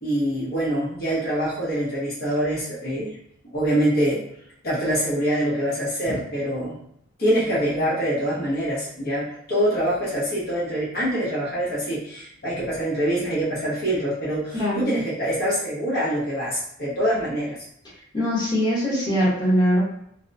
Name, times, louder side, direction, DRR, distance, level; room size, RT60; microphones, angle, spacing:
voice 1, 0.0-3.1 3.5-4.2 4.6-6.7 7.2-17.6, right 1 dB, 50° left, -8 dB, 0.9 m, -25 dB
voice 2, 14.5-14.9 18.1-19.8, equal, 20° left, -8 dB, 1.1 m, -22 dB
2.9 x 2.0 x 2.5 m, 0.72 s
head